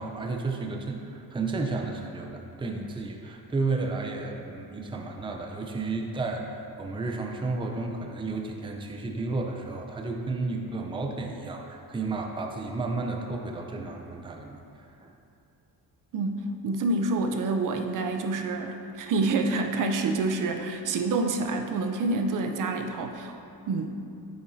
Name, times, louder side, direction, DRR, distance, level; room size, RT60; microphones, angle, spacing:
voice 1, 0.0-14.6 15.0-15.1, right 3 dB, 15° right, 2 dB, 0.5 m, -32 dB
voice 2, 16.1-23.4 23.7-23.9, right 3 dB, 60° right, 5 dB, 0.6 m, -27 dB
8.9 x 8.6 x 2.7 m, 2.6 s
cardioid pair, 135°, 37 cm